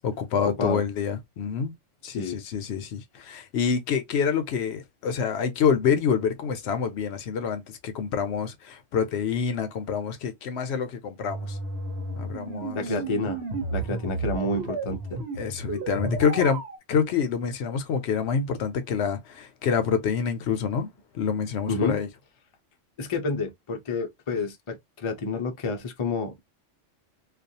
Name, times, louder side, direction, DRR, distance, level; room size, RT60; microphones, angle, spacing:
voice 1, 0.0-1.7 2.0-11.6 12.1-12.8 15.4-16.6 16.9-20.9 21.1-22.1, left 6 dB, 70° left, 0.8 m, -27 dB
voice 2, 2.0-2.4 12.7-13.4 13.7-15.2 21.7-22.0 23.0-26.4, left 3 dB, 40° left, 0.4 m, -29 dB
sound 1, 11.2-16.8, right 2 dB, 60° right, 1.1 m, -32 dB
2.4 x 2.3 x 2.6 m
omnidirectional pair, 1.2 m